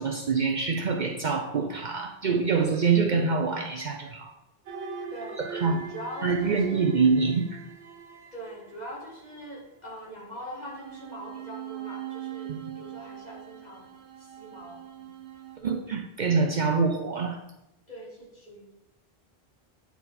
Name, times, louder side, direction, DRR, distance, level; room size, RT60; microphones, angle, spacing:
voice 1, 0.0-4.3 5.5-5.8 6.2-7.6 15.6-17.4, right 5 dB, 50° right, 2 dB, 0.7 m, -25 dB
sound 1, 4.7-9.4 10.3-15.6, right 8 dB, 85° right, 0.9 m, -42 dB
voice 2, 5.1-6.9 8.3-15.2 17.9-18.7, equal, 40° left, -4 dB, 2.2 m, -42 dB
9.2 x 4.5 x 4.1 m, 0.89 s
omnidirectional pair, 1.1 m